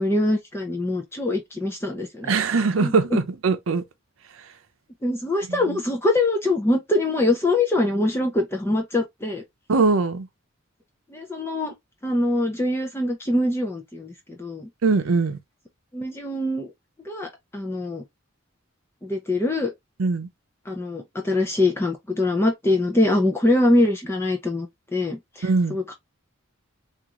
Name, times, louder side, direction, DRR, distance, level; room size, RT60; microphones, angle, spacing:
voice 1, 0.0-2.3 2.8-3.2 5.0-9.4 11.1-11.7 12.0-14.7 15.9-16.7 17.1-18.0 19.0-19.7 20.7-24.7 24.9-25.9, left 2 dB, 10° left, 0.5 m, -23 dB
voice 2, 2.3-3.8 5.5-5.8 9.7-10.3 14.8-15.4 20.0-20.3 25.4-25.8, right 4 dB, 80° right, 0.6 m, -21 dB
3.6 x 2.5 x 2.9 m
head